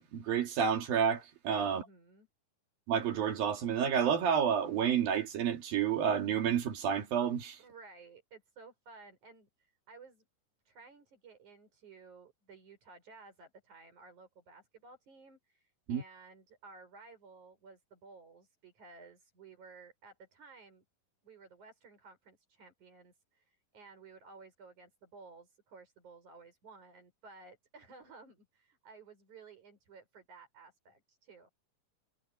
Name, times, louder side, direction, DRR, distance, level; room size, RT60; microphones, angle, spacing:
voice 1, 0.0-1.8 2.9-7.6 15.9-16.0, right 8 dB, 85° right, 4.4 m, -30 dB
voice 2, 1.7-2.3 7.6-10.2 10.7-20.8 21.2-31.5, right 4 dB, 60° right, 7.7 m, -55 dB
omnidirectional pair, 4.0 m